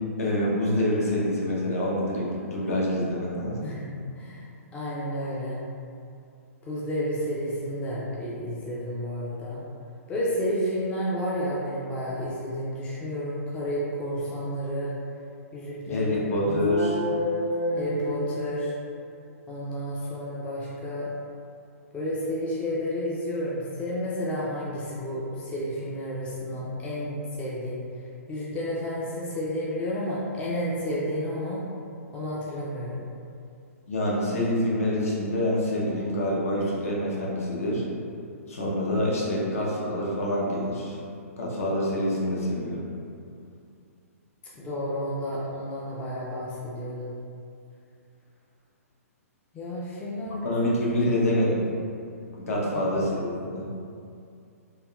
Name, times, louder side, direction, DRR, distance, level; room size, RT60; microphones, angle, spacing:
voice 1, 0.2-3.6 15.9-17.0 33.9-37.8 38.5-41.0 41.4-42.9 50.4-51.6 52.4-53.6, left 1 dB, 65° left, -5 dB, 0.7 m, -26 dB
voice 2, 3.6-4.5 4.7-5.6 6.7-9.6 10.1-14.9 15.5-16.1 16.4-16.5 17.8-18.7 19.5-21.1 21.9-27.8 28.3-31.6 32.1-33.0 44.6-47.1 49.5-50.5 50.9-51.0 52.7-52.8, equal, 15° left, -7 dB, 0.4 m, -31 dB
sound 1, 16.3-18.9, equal, 80° right, 0.8 m, -30 dB
3.4 x 2.2 x 2.3 m, 2.5 s
figure-of-eight pair, 120°, 8 cm